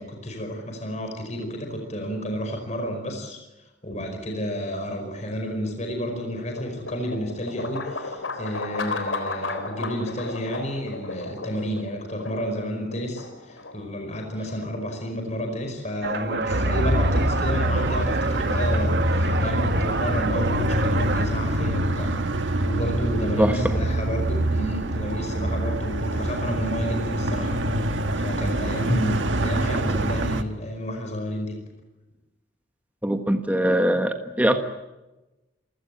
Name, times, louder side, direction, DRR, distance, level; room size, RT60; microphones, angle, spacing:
voice 1, 0.0-31.6, equal, 35° left, 3 dB, 5.1 m, -31 dB
sound 1, 5.2-19.3, left 3 dB, 85° left, 3.7 m, -36 dB
sound 2, 16.0-21.3, right 3 dB, 55° right, 1.7 m, -28 dB
sound 3, 16.5-30.4, right 1 dB, 75° right, 1.7 m, -25 dB
voice 2, 23.4-23.8 28.9-29.0 33.0-34.6, right 1 dB, 10° right, 6 dB, 1.4 m, -22 dB
28.0 x 16.5 x 8.8 m, 1.0 s
head